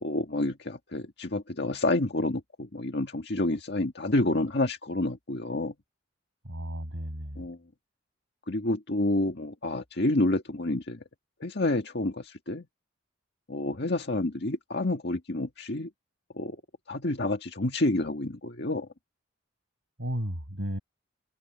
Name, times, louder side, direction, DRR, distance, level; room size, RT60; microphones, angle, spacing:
voice 1, 0.0-5.7 7.4-7.6 8.5-11.0 11.4-12.6 13.5-15.9 16.4-16.6 16.9-18.9, left 2 dB, 60° left, 1.8 m, -29 dB
voice 2, 6.4-7.4 20.0-20.8, equal, 85° right, 7.1 m, -34 dB
head